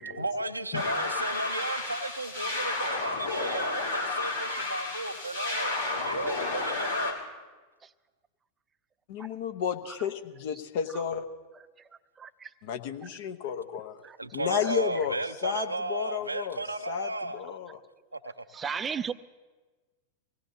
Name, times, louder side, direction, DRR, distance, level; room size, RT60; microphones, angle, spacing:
voice 1, 0.1-7.2 14.2-17.4 18.1-18.4, right 2 dB, 80° right, 9 dB, 0.6 m, -34 dB
sound 1, 0.7-7.1, left 3 dB, 80° left, 3.0 m, -32 dB
voice 2, 9.1-11.3 12.6-14.0 14.3-17.8, left 8 dB, 50° left, 6 dB, 1.0 m, -33 dB
voice 3, 12.2-12.5 14.0-14.2 14.6-14.7 18.5-19.1, right 7 dB, 20° right, 14 dB, 0.5 m, -35 dB
24.5 x 18.0 x 2.8 m, 1.3 s
figure-of-eight pair, 90°, 0 cm